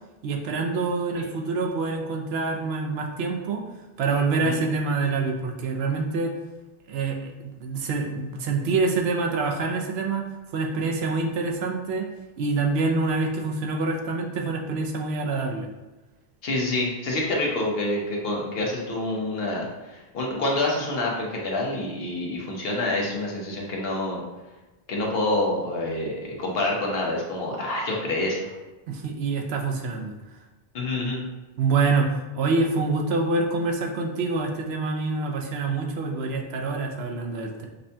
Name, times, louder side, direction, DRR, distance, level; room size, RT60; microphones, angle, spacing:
voice 1, 0.2-3.6 4.0-6.3 6.9-10.2 10.5-12.1 12.4-15.7 28.9-30.1 31.6-37.7, right 3 dB, 80° right, 2 dB, 0.8 m, -26 dB
voice 2, 16.4-24.2 24.9-28.5 30.7-31.2, left 2 dB, 70° left, -2 dB, 1.0 m, -27 dB
5.3 x 2.2 x 2.7 m, 1.1 s
omnidirectional pair, 1.0 m